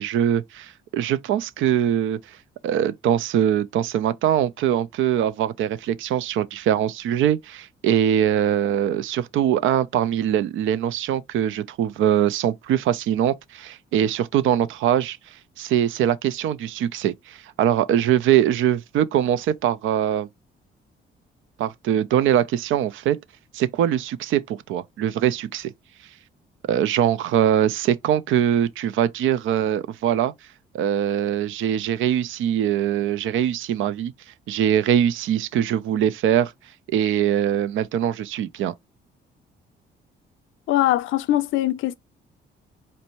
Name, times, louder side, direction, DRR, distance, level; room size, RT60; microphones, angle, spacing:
voice 1, 0.0-2.2 2.6-15.2 15.6-20.3 21.6-23.2 23.5-25.7 26.7-30.3 30.7-34.1 34.5-36.5 36.9-38.7, right 10 dB, 80° right, 0.5 m, -22 dB
voice 2, 40.7-41.9, left 14 dB, 80° left, 0.4 m, -21 dB
4.3 x 2.6 x 2.9 m
cardioid pair, 90°, 20 cm